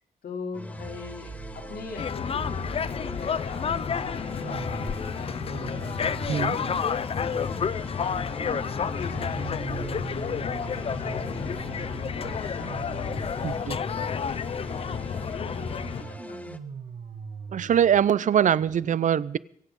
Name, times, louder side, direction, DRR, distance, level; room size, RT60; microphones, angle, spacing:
voice 1, 0.2-6.6 6.9-16.4, left 4 dB, 85° left, 2 dB, 3.9 m, -42 dB
sound 1, 0.5-16.6, left 1 dB, 10° left, 0.9 m, -42 dB
sound 2, 0.8-18.7, right 5 dB, 75° right, 7.3 m, -42 dB
sound 3, 2.0-16.0, left 7 dB, 40° left, 0.5 m, -30 dB
voice 2, 13.4-13.8 17.5-19.4, right 9 dB, 55° right, 20 dB, 0.6 m, -22 dB
24.5 x 8.5 x 5.3 m, 0.65 s
wide cardioid pair, 175°, 15 cm